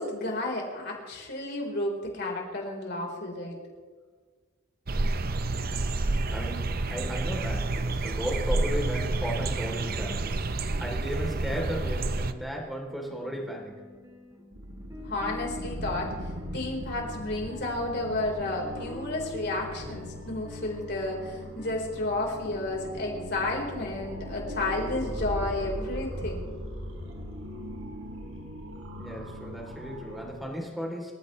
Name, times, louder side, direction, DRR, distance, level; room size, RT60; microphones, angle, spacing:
voice 1, 0.0-3.6 15.0-16.1 16.5-26.5, left 2 dB, 55° left, 0 dB, 4.4 m, -32 dB
sound 1, 4.9-12.3, right 2 dB, 45° right, 0.7 m, -29 dB
voice 2, 6.3-13.8 29.0-31.1, equal, ahead, -1 dB, 3.4 m, -35 dB
sound 2, 10.7-25.1, left 1 dB, 15° right, 2.1 m, -47 dB
sound 3, 14.5-30.3, equal, 90° right, 3.9 m, -39 dB
27.0 x 15.0 x 3.3 m, 1.5 s
head